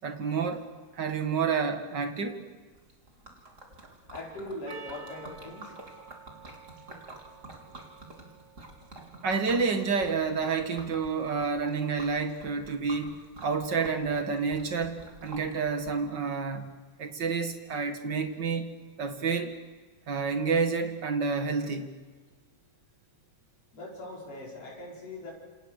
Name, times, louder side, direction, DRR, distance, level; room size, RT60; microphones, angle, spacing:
voice 1, 0.0-0.7 1.0-2.4 9.2-13.2 13.4-16.7 17.0-18.7 19.0-19.5 20.1-21.9, right 5 dB, 40° right, 2.3 m, -29 dB
Liquid, 2.7-15.9, right 2 dB, 25° right, 3.9 m, -49 dB
voice 2, 4.1-5.6 23.7-25.3, left 1 dB, 55° left, 6.3 m, -40 dB
Percussion, 4.7-9.2, right 6 dB, 60° right, 3.6 m, -51 dB
28.0 x 28.0 x 6.7 m
omnidirectional pair, 3.3 m